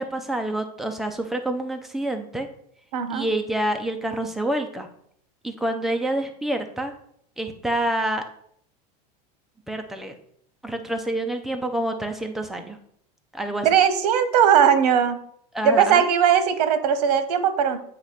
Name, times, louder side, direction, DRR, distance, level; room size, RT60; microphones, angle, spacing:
voice 1, 0.0-2.5 3.1-4.9 5.4-6.9 7.4-8.2 9.7-10.1 10.6-12.8 13.3-13.7 15.5-16.0, right 1 dB, ahead, 5 dB, 0.5 m, -27 dB
voice 2, 2.9-3.3 13.6-15.2 15.6-17.8, right 8 dB, 90° right, 11 dB, 0.9 m, -19 dB
8.1 x 3.0 x 5.7 m, 0.68 s
supercardioid pair, 165°, 20 cm